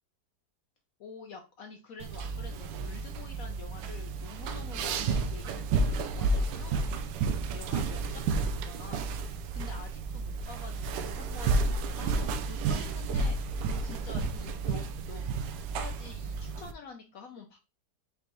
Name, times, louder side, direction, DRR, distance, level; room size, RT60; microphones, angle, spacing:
voice 1, 1.0-6.8 7.2-13.4 13.8-15.2 15.8-17.6, left 5 dB, 65° left, 4 dB, 1.0 m, -47 dB
sound 1, 2.0-16.7, right 3 dB, 85° right, 1.2 m, -31 dB
5.1 x 3.3 x 3.0 m, 0.29 s
omnidirectional pair, 1.9 m